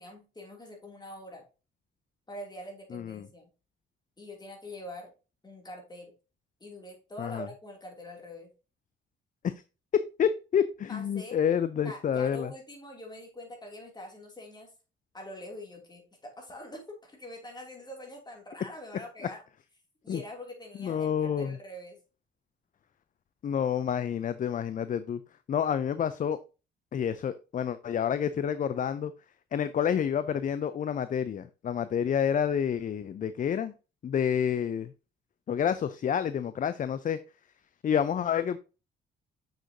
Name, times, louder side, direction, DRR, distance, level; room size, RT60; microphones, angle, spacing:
voice 1, 0.0-1.4 2.3-3.5 4.2-5.1 5.4-6.1 6.6-8.5 10.9-11.4 11.8-14.7 15.1-19.4 20.0-22.0, left 1 dB, 20° left, 1 dB, 2.9 m, -44 dB
voice 2, 2.9-3.3 7.2-7.5 9.4-9.5 10.2-12.5 20.1-20.2 20.8-21.6 23.4-25.2 25.5-26.4 26.9-29.1 29.5-33.7 34.0-34.9 35.5-37.2 37.8-38.6, left 8 dB, 40° left, 13 dB, 0.5 m, -29 dB
6.7 x 6.4 x 2.8 m, 0.31 s
cardioid pair, 90°, 20 cm